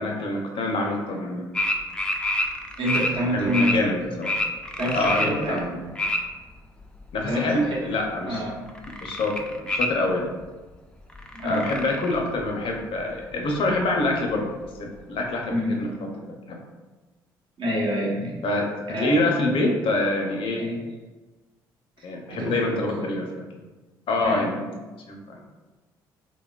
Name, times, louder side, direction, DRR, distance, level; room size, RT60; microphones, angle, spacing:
voice 1, 0.0-1.4 3.3-4.3 4.9-5.8 7.1-7.6 7.9-8.4 9.0-10.3 11.4-16.6 18.4-20.7 22.0-23.6 24.1-24.6 25.1-25.4, left 2 dB, 60° left, 1 dB, 0.6 m, -26 dB
sound 1, 1.5-3.1 3.5-3.7 4.2-6.2 6.6-7.6 8.0-8.4 8.7-9.9 10.4-10.5 10.7-10.8 11.1-12.4 12.7-12.8 13.0-13.1 13.7-13.8 14.3-14.4 14.7-14.8, left 1 dB, 10° left, 0.4 m, -27 dB
voice 2, 2.8-3.8 4.8-5.6 7.3-7.9 8.3-8.6 11.3-11.8 15.5-15.8 17.6-18.4 18.9-19.2 20.6-20.8 22.3-22.7 24.2-24.5, equal, 55° right, -4 dB, 1.0 m, -27 dB
3.1 x 2.2 x 2.3 m, 1.2 s
hypercardioid pair, 55°, 10 cm